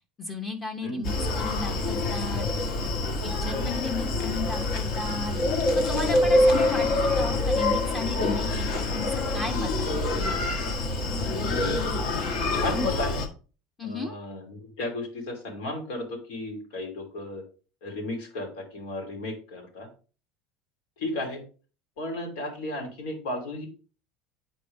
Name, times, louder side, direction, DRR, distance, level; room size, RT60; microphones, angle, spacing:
voice 1, 0.2-2.5 3.2-5.4 5.9-10.0 13.8-14.2, left 2 dB, 15° left, 5 dB, 0.9 m, -35 dB
Screaming, 1.0-13.3, left 2 dB, 55° left, 1.4 m, -26 dB
voice 2, 11.4-12.0 12.5-13.2 13.8-17.4 17.8-19.9 21.0-21.4 22.0-23.7, left 2 dB, 85° left, 1 dB, 2.9 m, -34 dB
9.1 x 4.4 x 3.5 m, 0.36 s
cardioid pair, 150°, 0 cm